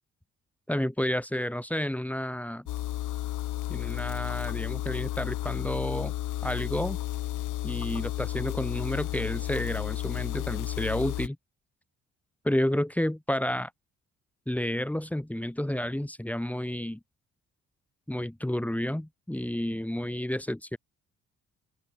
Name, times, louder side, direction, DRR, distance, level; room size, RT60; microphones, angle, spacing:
voice 1, 0.7-2.6 3.7-6.1 6.4-7.0 7.6-11.4 12.4-13.7 14.5-17.0 18.1-20.8, left 1 dB, 5° left, 3.5 m, -30 dB
sound 1, 2.7-11.3, left 15 dB, 85° left, 2.8 m, -32 dB
open air
cardioid pair, 90°, 30 cm